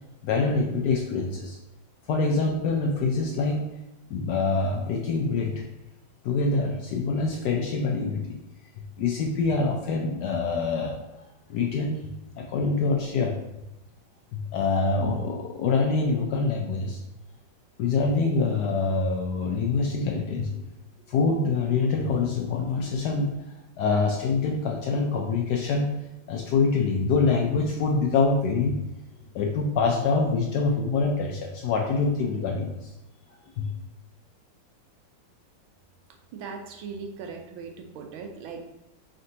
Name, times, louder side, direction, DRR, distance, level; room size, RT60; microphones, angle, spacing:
voice 1, 0.2-1.6 2.1-3.7 4.1-5.5 6.2-8.4 9.0-11.0 11.5-12.1 12.4-13.4 14.3-17.0 17.8-20.7 21.1-23.3 23.8-25.9 26.3-28.8 29.3-32.9 33.6-33.7, left 4 dB, 75° left, 1 dB, 1.0 m, -25 dB
voice 2, 36.3-38.6, right 5 dB, 85° right, 3 dB, 1.4 m, -39 dB
4.3 x 3.8 x 2.7 m, 0.94 s
omnidirectional pair, 2.2 m